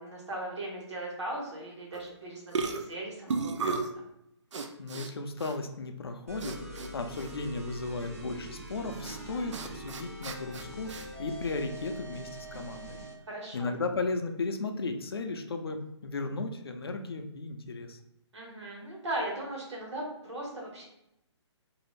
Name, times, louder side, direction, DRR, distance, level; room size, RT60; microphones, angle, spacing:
voice 1, 0.0-3.8 13.3-13.7 18.3-20.9, right 1 dB, 70° right, -2 dB, 1.2 m, -38 dB
sound 1, 1.9-2.2 2.5-4.0 4.5-5.1 5.4-5.6 6.4-6.9 7.2-7.3 9.0-9.2 9.5-11.0, right 4 dB, 85° right, 0.4 m, -34 dB
voice 2, 4.8-13.0 13.5-18.0, left 3 dB, 55° left, 6 dB, 0.4 m, -35 dB
sound 2, 6.3-13.2, right 1 dB, 30° right, 0.5 m, -43 dB
2.6 x 2.4 x 3.1 m, 0.81 s
hypercardioid pair, 180°, 15 cm